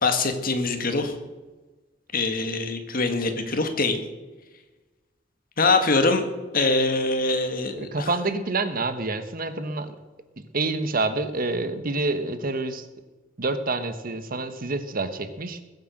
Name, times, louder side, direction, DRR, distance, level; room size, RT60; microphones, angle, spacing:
voice 1, 0.0-1.1 2.1-4.0 5.6-6.3 6.5-8.1, left 3 dB, 50° left, 6 dB, 1.9 m, -23 dB
voice 2, 7.8-9.9 10.5-12.9 13.4-15.6, right 3 dB, 50° right, 10 dB, 1.2 m, -27 dB
21.0 x 8.0 x 6.6 m, 1.2 s
head